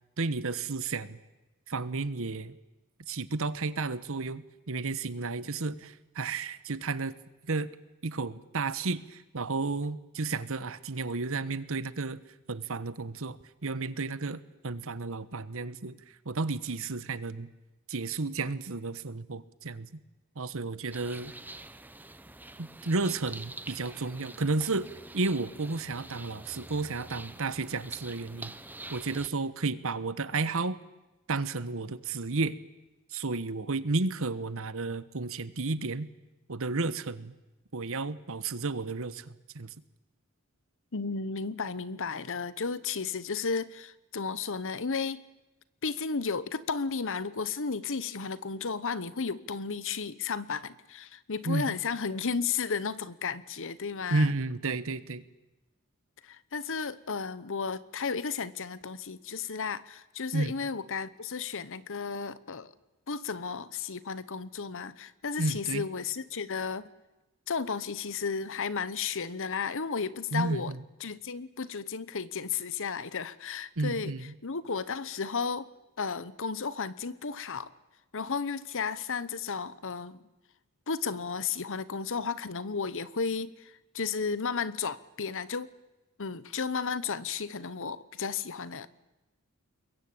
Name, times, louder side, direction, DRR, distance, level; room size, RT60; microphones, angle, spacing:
voice 1, 0.2-1.2 1.7-2.6 3.1-7.1 7.4-7.7 8.0-12.2 12.5-16.0 16.2-17.5 17.9-19.9 20.4-21.3 22.6-24.9 25.1-28.5 28.9-30.8 31.3-32.6 33.1-36.1 36.5-37.3 37.7-39.7 51.4-51.8 54.1-55.2 60.3-60.5 65.4-65.8 70.3-70.8 73.8-74.3, right 3 dB, 65° right, 15 dB, 1.2 m, -32 dB
sound 1, 20.9-29.3, right 2 dB, 10° right, 0.8 m, -46 dB
voice 2, 40.9-45.2 45.8-54.3 56.2-62.7 63.1-66.9 67.5-70.7 71.0-74.1 74.4-75.7 76.0-77.7 78.1-80.2 80.9-85.7 86.2-88.9, left 5 dB, 60° left, 16 dB, 1.0 m, -33 dB
27.0 x 22.5 x 8.9 m, 1.0 s
head